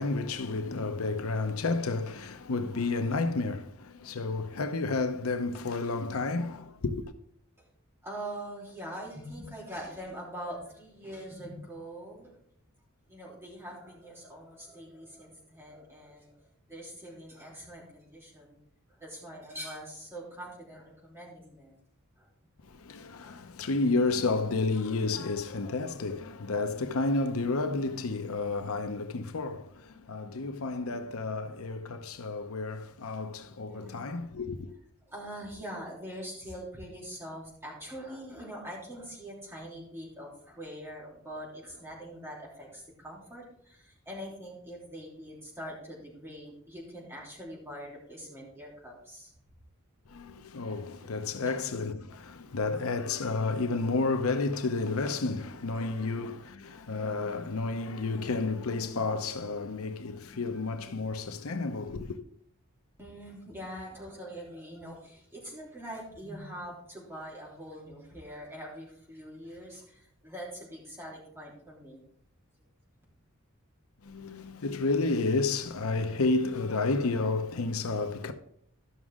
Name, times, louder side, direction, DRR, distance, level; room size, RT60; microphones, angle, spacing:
voice 1, 0.0-7.1 22.6-34.7 50.1-62.2 74.0-78.3, left 3 dB, 85° left, 0.8 m, -31 dB
voice 2, 8.0-12.4 13.1-16.4 16.7-18.6 19.0-21.8 22.2-22.3 33.7-34.2 35.1-49.3 51.0-51.1 51.4-51.6 52.7-52.8 63.0-72.0, equal, 10° right, 3.2 m, -43 dB
13.0 x 6.2 x 3.7 m
head